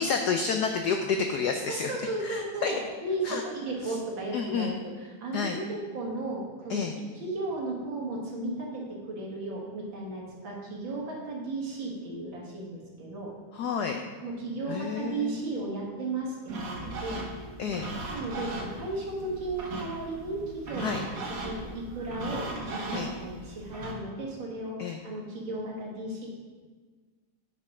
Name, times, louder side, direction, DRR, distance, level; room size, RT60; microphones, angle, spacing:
voice 1, 0.0-1.9 2.2-2.7 3.2-3.4 4.3-4.8 5.3-5.6 6.7-7.0 13.5-14.0 14.7-15.5 17.6-17.9 20.8-21.0 22.9-23.1 24.8-25.0, left 5 dB, 75° left, 4 dB, 0.9 m, -29 dB
voice 2, 1.7-6.9 7.1-13.3 14.2-17.8 18.1-26.3, right 2 dB, 65° right, -3 dB, 2.4 m, -35 dB
sound 1, 16.5-24.0, right 2 dB, 45° right, 1.5 m, -38 dB
9.4 x 5.4 x 4.9 m, 1.4 s
omnidirectional pair, 2.3 m